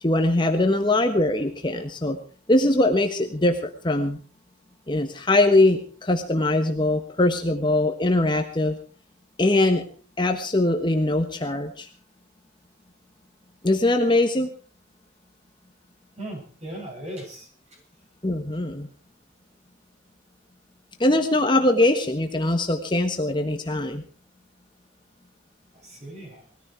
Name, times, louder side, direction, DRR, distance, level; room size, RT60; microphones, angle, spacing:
voice 1, 0.0-2.2 2.5-4.2 4.9-8.8 9.4-9.8 10.2-11.9 13.6-14.5 18.2-18.9 21.0-24.0, left 2 dB, 25° left, 5 dB, 1.3 m, -22 dB
voice 2, 16.2-17.5 25.7-26.4, right 1 dB, 35° right, 0 dB, 7.0 m, -37 dB
19.5 x 14.0 x 4.6 m, 0.40 s
head